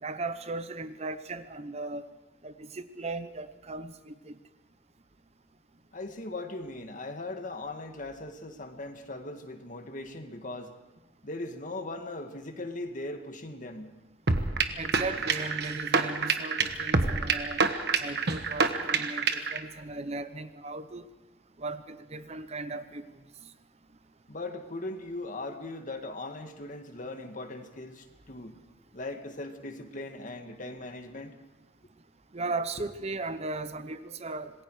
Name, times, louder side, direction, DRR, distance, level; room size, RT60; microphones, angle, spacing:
voice 1, 0.0-2.1 2.4-4.4 14.8-17.6 18.0-21.1 21.6-23.0 32.3-34.6, right 3 dB, 35° right, 12 dB, 0.8 m, -37 dB
voice 2, 5.9-10.7 11.2-13.9 24.3-28.6 28.9-31.3, left 2 dB, 45° left, 5 dB, 1.9 m, -39 dB
sound 1, 14.3-19.6, right 4 dB, 65° right, 1.3 m, -27 dB
26.5 x 20.5 x 4.9 m, 1.0 s
head